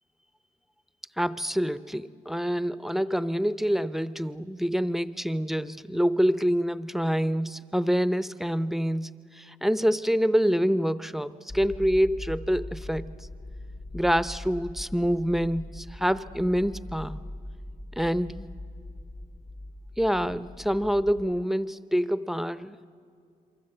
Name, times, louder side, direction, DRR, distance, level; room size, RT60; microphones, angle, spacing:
voice 1, 1.2-13.1 13.9-17.2 18.0-18.5 20.0-22.8, equal, ahead, 15 dB, 0.7 m, -26 dB
sound 1, 11.5-21.4, left 1 dB, 25° left, 0.9 m, -41 dB
28.0 x 23.5 x 7.9 m, 2.4 s
cardioid pair, 75°, 16 cm